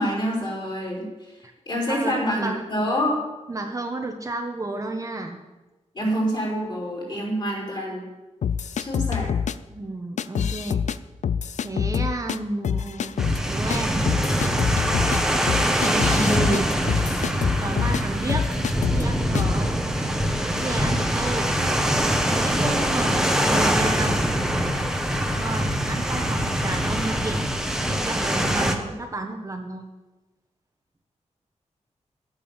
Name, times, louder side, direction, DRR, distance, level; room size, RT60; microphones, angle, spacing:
voice 1, 0.0-1.3 1.7-3.2 5.9-8.1 8.8-9.3, equal, 40° left, -3 dB, 5.0 m, -26 dB
voice 2, 1.9-2.6 3.5-5.4 9.7-10.8 11.6-13.2 13.5-14.0 15.8-16.7 17.6-18.5 18.9-19.7 20.4-21.5 22.3-24.3 25.4-27.5 27.8-29.9, right 2 dB, 25° right, 3 dB, 1.2 m, -31 dB
sound 1, 8.4-9.5 10.2-11.0 11.2-12.4 12.6-13.4 13.7-13.8 14.1-18.0 18.3-19.0 19.4-19.6, left 7 dB, 75° left, 0.5 m, -26 dB
sound 2, 13.2-28.8, equal, 5° right, 1.2 m, -23 dB
12.5 x 8.7 x 7.4 m, 1.1 s
wide cardioid pair, 135°, 12 cm